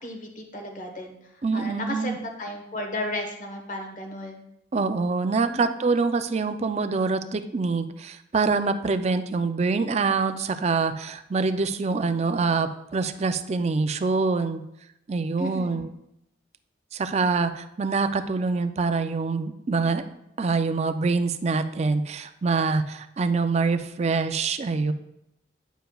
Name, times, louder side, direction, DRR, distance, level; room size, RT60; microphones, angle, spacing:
voice 1, 0.0-1.2 1.5-4.4 5.4-5.7 15.4-15.7, left 1 dB, 45° left, 3 dB, 1.2 m, -34 dB
voice 2, 1.4-2.2 4.7-14.6 15.1-15.9 16.9-20.0 20.4-24.9, right 4 dB, 40° right, 10 dB, 0.4 m, -25 dB
9.0 x 6.7 x 2.3 m, 0.82 s
head